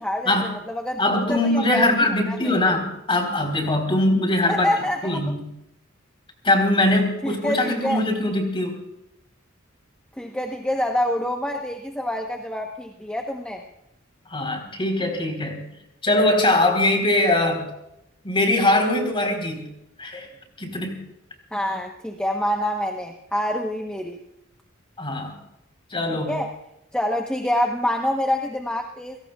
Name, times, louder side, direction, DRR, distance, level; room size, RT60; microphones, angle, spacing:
voice 1, 0.0-2.7 4.5-5.2 7.2-8.0 10.2-13.6 21.5-24.2 26.1-26.5 26.9-29.2, left 1 dB, 5° left, 2 dB, 1.0 m, -26 dB
voice 2, 1.0-4.7 5.0-5.4 6.4-8.8 14.3-15.6 16.0-17.7 18.2-19.6 20.0-20.3 20.6-21.0 25.0-25.4 25.9-26.4, left 1 dB, 25° left, 4 dB, 3.8 m, -21 dB
30.0 x 17.0 x 2.4 m, 0.86 s
head